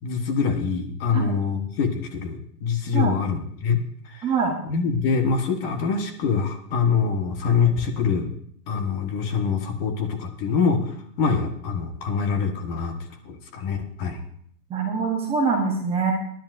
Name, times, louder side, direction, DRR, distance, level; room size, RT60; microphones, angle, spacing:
voice 1, 0.0-4.3 4.7-8.3 8.7-12.9 13.2-14.2, left 5 dB, 35° left, 6 dB, 1.5 m, -25 dB
voice 2, 4.2-4.6 14.7-16.1, right 5 dB, 10° right, 0 dB, 1.0 m, -24 dB
21.5 x 10.5 x 2.6 m, 0.63 s
hypercardioid pair, 155°, 48 cm